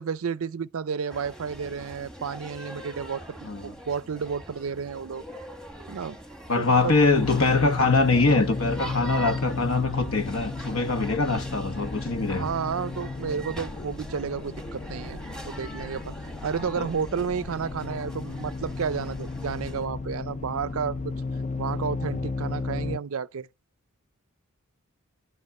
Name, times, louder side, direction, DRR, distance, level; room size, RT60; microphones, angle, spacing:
voice 1, 0.0-5.2 5.9-6.2 6.6-7.0 12.3-16.1 16.4-21.1 21.6-23.5, right 6 dB, 70° right, 0.5 m, -31 dB
sound 1, 1.1-19.9, right 1 dB, 5° left, 1.2 m, -42 dB
voice 2, 3.4-3.7 6.5-12.5 16.6-16.9 22.0-22.1, left 3 dB, 65° left, 1.1 m, -23 dB
sound 2, 6.8-23.0, left 3 dB, 35° left, 0.5 m, -34 dB
11.0 x 5.3 x 8.4 m
head